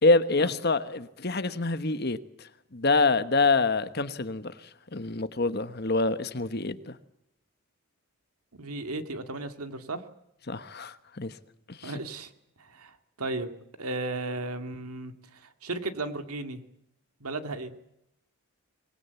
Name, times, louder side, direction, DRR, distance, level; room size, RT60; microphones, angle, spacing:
voice 1, 0.0-2.2 2.7-4.5 4.9-7.0 10.5-11.3 11.7-11.9, left 3 dB, 45° left, 1.2 m, -26 dB
voice 2, 8.5-10.0 11.8-12.3 12.6-13.5 13.8-16.6 17.2-17.7, right 2 dB, 85° right, 2.4 m, -35 dB
25.0 x 20.5 x 8.3 m
head